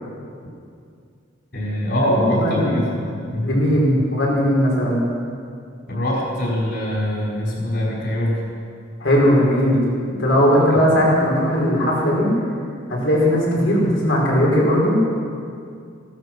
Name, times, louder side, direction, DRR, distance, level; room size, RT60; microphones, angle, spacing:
voice 1, 1.5-2.9 3.3-3.5 5.9-8.4 10.7-10.8, left 1 dB, 55° left, -5 dB, 5.4 m, -23 dB
voice 2, 2.1-2.9 3.4-5.0 9.0-12.3 12.9-15.0, equal, 80° left, -4 dB, 5.0 m, -18 dB
16.5 x 13.0 x 6.2 m, 2.3 s
head